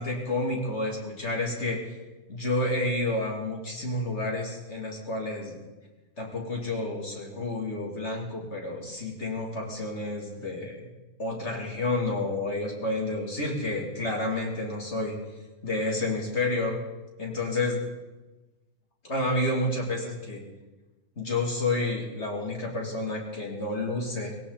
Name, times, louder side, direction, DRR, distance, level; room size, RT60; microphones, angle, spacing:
voice 1, 0.0-2.0 2.3-5.6 6.2-10.9 11.2-15.2 15.6-16.8 17.2-17.8 19.0-20.4 21.2-24.4, left 2 dB, 45° left, -1 dB, 3.3 m, -30 dB
19.5 x 17.0 x 4.2 m, 1.1 s
omnidirectional pair, 1.6 m